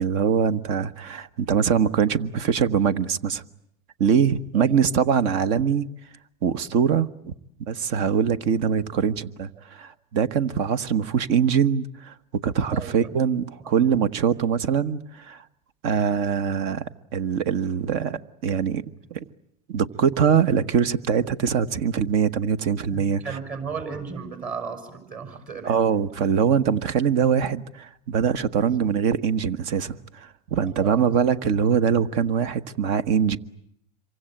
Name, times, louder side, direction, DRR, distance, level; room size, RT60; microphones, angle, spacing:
voice 1, 0.0-3.4 4.0-5.9 6.4-7.3 7.7-12.1 12.4-15.4 15.8-16.8 17.1-18.8 19.1-19.2 19.7-23.2 25.6-33.4, right 7 dB, 60° right, 1.3 m, -23 dB
voice 2, 12.7-13.2 13.6-13.7 17.8-18.0 22.9-25.8 28.4-28.9 30.8-31.2, right 5 dB, 40° right, 5.6 m, -35 dB
26.5 x 24.0 x 9.0 m
hypercardioid pair, 100°, 21 cm